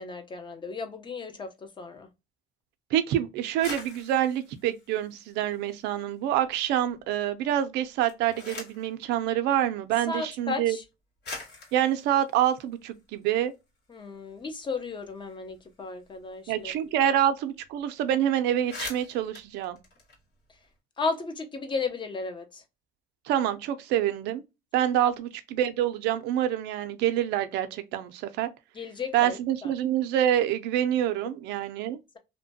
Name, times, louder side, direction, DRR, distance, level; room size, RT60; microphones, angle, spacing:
voice 1, 0.0-2.1 10.1-10.8 13.9-16.7 17.0-17.2 21.0-22.6 28.7-29.7, left 4 dB, 30° left, 0.6 m, -34 dB
voice 2, 2.9-10.8 11.7-13.5 16.5-19.8 23.3-24.4 24.7-28.5 29.1-32.2, right 11 dB, 90° right, 0.5 m, -26 dB
sound 1, 3.4-6.0 6.4-7.1 7.9-8.9 10.0-10.1 10.8-10.9 11.2-13.5 13.9-14.0 14.3-16.9 17.1-17.3 17.6-17.8 18.2-18.3 18.5-20.7, left 3 dB, 75° left, 1.6 m, -44 dB
2.8 x 2.2 x 2.7 m
cardioid pair, 110°, 17 cm